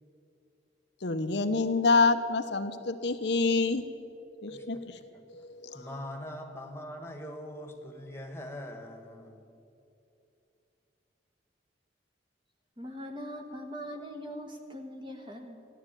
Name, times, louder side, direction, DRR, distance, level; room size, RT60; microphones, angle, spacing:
voice 1, 1.0-3.8 4.4-5.0 5.6-5.8, left 3 dB, 70° left, 8 dB, 0.8 m, -27 dB
voice 2, 4.5-5.2 5.7-9.5, left 1 dB, 15° left, 3 dB, 1.5 m, -43 dB
voice 3, 12.8-15.7, equal, 25° right, 4 dB, 1.5 m, -41 dB
14.5 x 11.0 x 9.0 m, 2.7 s
head